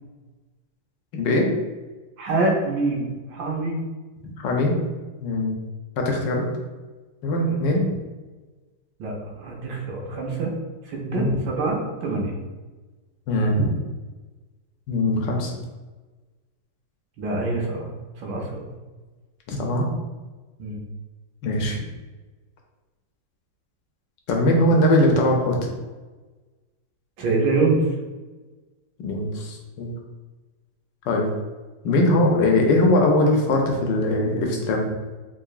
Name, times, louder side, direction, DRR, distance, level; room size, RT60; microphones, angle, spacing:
voice 1, 1.1-1.5 4.2-4.8 5.2-5.5 6.0-6.4 7.2-7.9 11.1-11.3 13.3-13.7 14.9-15.5 19.5-19.9 21.4-21.8 24.3-25.7 29.0-29.9 31.1-31.3 31.8-34.8, left 1 dB, 75° left, 1 dB, 1.2 m, -21 dB
voice 2, 2.2-3.8 7.5-7.6 9.0-9.1 9.4-10.5 10.9-12.3 17.2-17.9 18.2-18.6 20.6-20.8 27.2-27.8, right 3 dB, 75° right, 0 dB, 1.4 m, -25 dB
3.7 x 3.1 x 2.3 m, 1.3 s
omnidirectional pair, 2.1 m